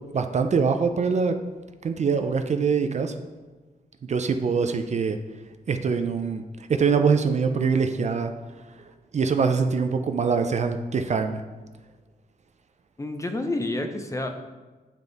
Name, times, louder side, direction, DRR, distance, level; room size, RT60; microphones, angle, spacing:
voice 1, 0.1-1.4 1.8-3.1 4.0-5.2 5.7-6.4 6.8-8.3 9.1-11.4, right 5 dB, 45° right, 7 dB, 0.4 m, -23 dB
voice 2, 13.0-14.3, left 2 dB, 20° left, 5 dB, 0.5 m, -29 dB
8.9 x 3.5 x 3.9 m, 1.3 s
wide cardioid pair, 135°, 16 cm